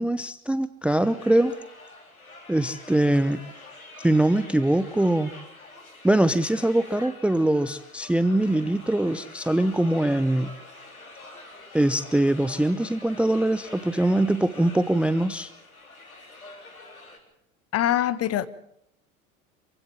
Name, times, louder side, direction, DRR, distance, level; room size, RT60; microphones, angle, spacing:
voice 1, 0.0-1.5 2.5-3.4 4.0-5.3 6.0-10.5 11.7-15.5, right 1 dB, 5° right, 14 dB, 0.7 m, -22 dB
sound 1, 0.9-17.2, left 2 dB, 80° left, 3.7 m, -45 dB
voice 2, 17.7-18.5, left 11 dB, 35° left, 15 dB, 1.4 m, -23 dB
26.5 x 16.0 x 7.6 m, 0.77 s
figure-of-eight pair, 75°, 42 cm